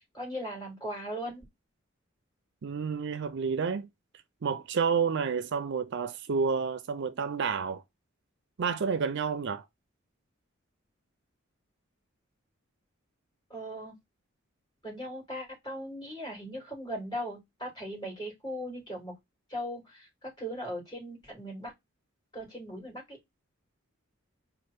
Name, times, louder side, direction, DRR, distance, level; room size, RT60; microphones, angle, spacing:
voice 1, 0.1-1.4 13.5-14.0 14.8-19.2 19.5-21.7 22.3-23.2, equal, 20° left, 3.0 m, -38 dB
voice 2, 2.6-3.9 4.4-7.8 8.6-9.6, right 6 dB, 60° right, 0.5 m, -30 dB
4.3 x 2.5 x 4.8 m
head